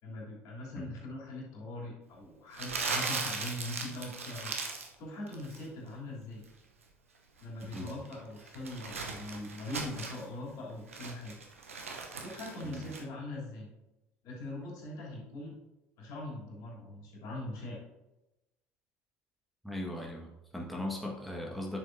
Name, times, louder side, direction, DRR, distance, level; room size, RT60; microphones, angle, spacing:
voice 1, 0.0-4.5 5.0-6.4 7.4-11.3 12.2-13.7 14.2-15.5 16.0-17.8, left 1 dB, 60° left, -3 dB, 3.2 m, -41 dB
Crumpling crinkling, 2.5-4.9 5.3-5.7 7.4-10.2 10.7-13.0, right 4 dB, 85° right, 0.9 m, -38 dB
voice 2, 19.6-21.8, left 1 dB, ahead, -2 dB, 1.6 m, -38 dB
10.0 x 7.4 x 2.7 m, 0.98 s
hypercardioid pair, 65°, 7 cm